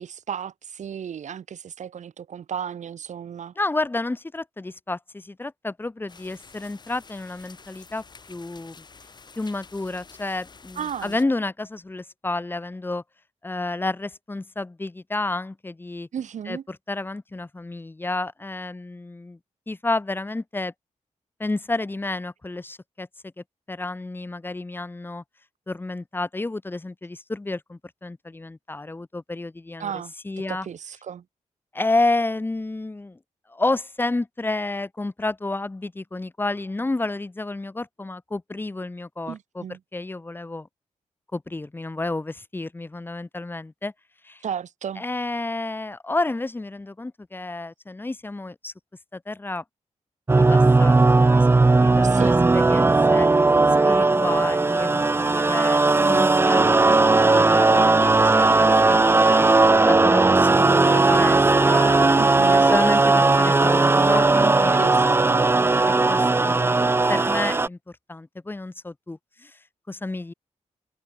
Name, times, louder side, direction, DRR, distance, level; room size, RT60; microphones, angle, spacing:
voice 1, 0.0-3.5 10.7-11.2 16.1-16.6 29.8-30.1 30.5-31.2 39.3-39.8 44.4-45.0 52.0-52.4 62.2-62.7 64.7-65.5, right 8 dB, 80° right, 5.1 m, -34 dB
voice 2, 3.5-8.8 9.4-13.0 13.4-16.1 16.5-19.4 19.7-20.7 21.4-23.1 23.7-25.2 25.7-29.9 30.2-30.7 31.7-33.2 33.5-39.6 39.9-40.7 41.3-43.9 44.2-44.4 45.0-48.7 49.1-49.6 50.4-53.3 53.8-59.5 59.8-62.1 62.5-64.7 66.1-66.8 67.1-67.8 68.1-69.5 69.9-70.3, left 2 dB, 15° left, 3.3 m, -30 dB
sound 1, 6.1-11.2, left 4 dB, 35° left, 4.7 m, -49 dB
sound 2, 50.3-67.7, right 3 dB, 20° right, 0.9 m, -17 dB
wide cardioid pair, 160°, 12 cm